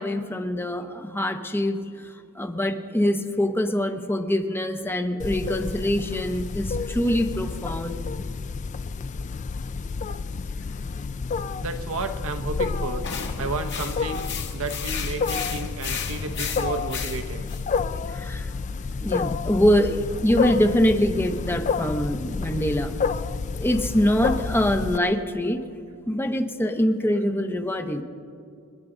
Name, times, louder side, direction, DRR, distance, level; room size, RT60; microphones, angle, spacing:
voice 1, 0.0-1.8 2.4-8.0 18.1-18.4 19.0-22.9 23.6-25.6 26.1-28.0, equal, 10° left, 7 dB, 0.7 m, -24 dB
Wild animals, 5.2-25.0, left 5 dB, 35° left, 0.3 m, -30 dB
voice 2, 11.6-13.0 13.4-17.4, right 3 dB, 65° right, 7 dB, 0.9 m, -32 dB
sound 1, 13.0-17.6, left 7 dB, 55° left, 1.3 m, -34 dB
29.5 x 10.0 x 3.8 m, 2.3 s
head